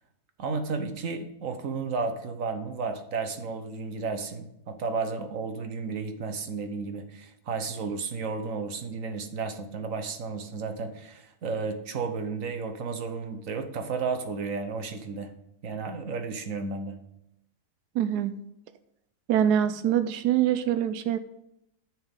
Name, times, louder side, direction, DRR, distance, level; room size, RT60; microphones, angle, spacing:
voice 1, 0.4-15.3 15.6-17.0, right 4 dB, 60° right, 8 dB, 1.3 m, -33 dB
voice 2, 17.9-18.3 19.3-21.2, right 10 dB, 85° right, 11 dB, 1.1 m, -24 dB
10.5 x 6.3 x 5.4 m, 0.82 s
omnidirectional pair, 1.6 m